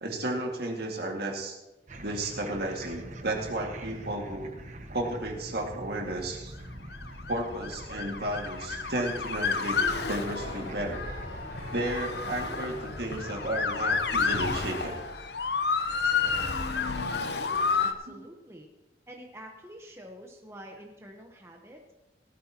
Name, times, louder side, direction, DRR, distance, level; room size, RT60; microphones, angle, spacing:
voice 1, 0.0-1.6 2.0-4.5 4.9-6.6 7.3-9.8 10.1-11.1 11.7-15.0 18.1-18.2, right 1 dB, 60° right, 1 dB, 2.1 m, -33 dB
sound 1, 1.9-17.2, right 1 dB, 40° right, 1.1 m, -46 dB
Motor vehicle (road) / Siren, 6.8-17.9, left 5 dB, 65° left, 0.9 m, -30 dB
sound 2, 9.9-15.0, left 1 dB, 85° left, 4.9 m, -42 dB
voice 2, 17.2-18.7 19.1-21.9, equal, 15° right, 1 dB, 1.0 m, -47 dB
17.5 x 13.0 x 2.9 m, 1.0 s
head